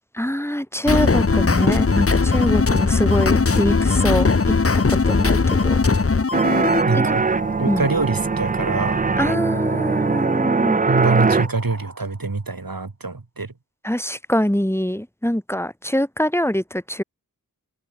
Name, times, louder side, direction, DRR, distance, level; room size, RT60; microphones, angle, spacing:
voice 1, 0.1-4.3 4.9-5.8 6.9-7.2 7.7-7.9 9.2-10.8 13.8-17.0, equal, 5° left, 3.7 m, -24 dB
sound 1, 0.9-6.8, left 4 dB, 40° left, 0.9 m, -18 dB
sound 2, 5.2-12.5, right 2 dB, 50° right, 5.6 m, -37 dB
sound 3, 6.3-11.5, right 4 dB, 25° right, 0.4 m, -21 dB
voice 2, 6.8-7.3 7.6-9.0 10.9-13.5, right 3 dB, 80° right, 6.2 m, -24 dB
open air
wide cardioid pair, 55°, 34 cm